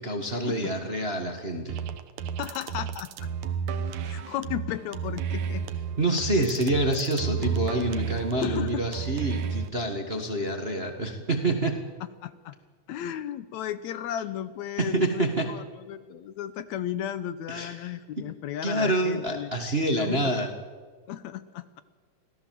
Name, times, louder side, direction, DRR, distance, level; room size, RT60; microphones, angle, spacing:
voice 1, 0.0-1.8 6.0-11.8 14.8-15.5 17.5-18.2 18.6-20.5, right 1 dB, 25° right, 4 dB, 1.3 m, -27 dB
sound 1, 1.7-9.7, right 7 dB, 70° right, 2.3 m, -32 dB
voice 2, 2.4-3.3 4.1-5.7 8.4-8.8 12.2-12.6 12.9-19.5 20.0-20.3 21.1-21.7, left 10 dB, 75° left, 13 dB, 2.0 m, -34 dB
25.0 x 17.0 x 7.6 m, 1.5 s
omnidirectional pair, 3.6 m